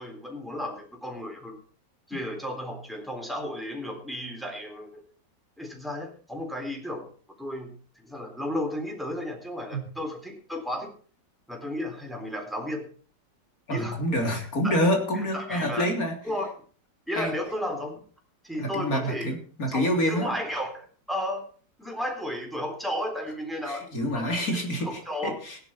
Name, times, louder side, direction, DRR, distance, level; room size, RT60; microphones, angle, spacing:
voice 1, 0.0-1.6 2.1-5.0 5.6-7.1 7.4-10.9 11.5-12.9 13.7-14.8 15.1-15.9 16.2-16.5 17.1-17.9 18.4-19.3 19.7-21.4 21.8-24.4 24.8-25.4, left 1 dB, ahead, 2 dB, 3.7 m, -33 dB
voice 2, 13.7-16.2 17.1-17.3 18.6-20.3 23.7-25.6, equal, 55° left, 3 dB, 3.7 m, -27 dB
16.5 x 11.0 x 4.4 m, 0.42 s
omnidirectional pair, 1.9 m